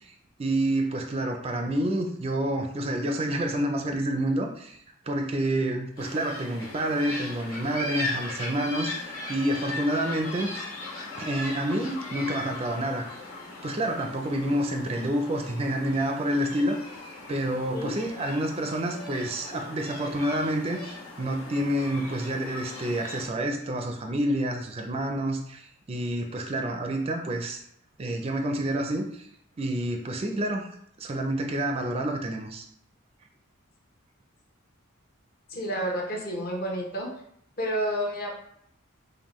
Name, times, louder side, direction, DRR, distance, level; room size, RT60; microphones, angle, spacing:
voice 1, 0.4-4.8 5.1-10.5 11.2-13.0 13.6-16.8 17.3-27.6 28.0-29.3 29.6-30.7 31.0-32.7, right 1 dB, 30° right, 3 dB, 0.4 m, -28 dB
sound 1, 6.0-23.3, left 2 dB, 70° left, 1.6 m, -38 dB
voice 2, 35.5-37.1 37.6-38.3, equal, 45° left, -1 dB, 0.9 m, -30 dB
5.3 x 2.2 x 3.0 m, 0.69 s
head